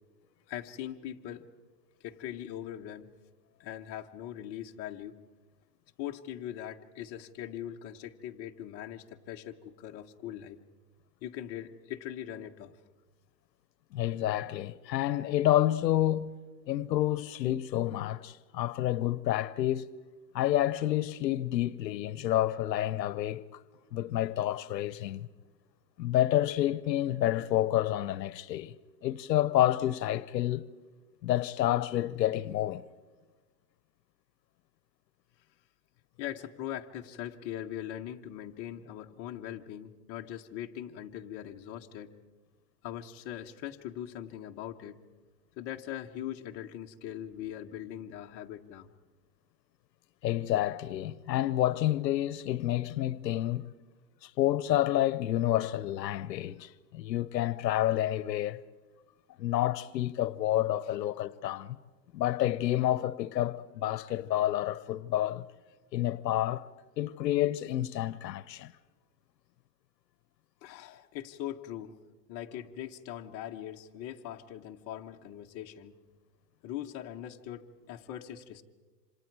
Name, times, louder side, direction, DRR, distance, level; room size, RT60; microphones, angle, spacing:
voice 1, 0.5-1.4 2.0-3.1 3.6-5.2 6.0-10.6 11.2-12.8 36.2-42.1 42.8-45.0 45.6-48.9 70.6-71.9 72.3-76.0 76.6-78.6, left 11 dB, 30° left, 1.2 m, -41 dB
voice 2, 13.9-16.3 16.7-19.9 20.3-23.4 23.9-25.3 26.0-28.7 29.0-30.6 31.2-32.8 50.2-53.7 54.2-58.6 59.4-61.8 62.1-65.5 65.9-66.6 67.0-68.7, left 13 dB, 80° left, 0.9 m, -29 dB
28.0 x 26.5 x 4.7 m
supercardioid pair, 150°, 50 cm